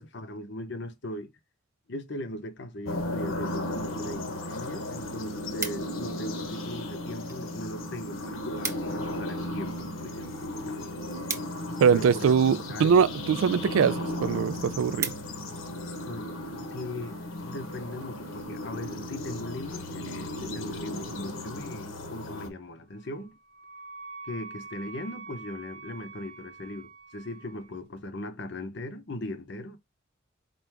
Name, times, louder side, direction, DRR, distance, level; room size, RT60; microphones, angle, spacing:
voice 1, 0.0-1.3 1.9-10.9 11.9-12.3 12.7-12.9 16.1-16.3 16.7-23.4 24.2-29.8, left 1 dB, 55° left, 0.7 m, -39 dB
sound 1, 2.9-22.5, left 1 dB, 80° left, 1.0 m, -35 dB
sound 2, 5.2-6.2 6.9-7.4 7.7-7.8 8.1-8.2 8.4-9.0 9.4-12.2 13.0-13.3 13.8-13.9 14.2-14.3 14.6-15.6 16.1-16.3, right 4 dB, 15° right, 0.5 m, -38 dB
voice 2, 11.8-15.1, right 6 dB, 75° right, 0.3 m, -22 dB
Wind instrument woodwind instrument, 23.0-27.8, right 4 dB, 50° right, 0.7 m, -45 dB
4.6 x 2.5 x 3.3 m
head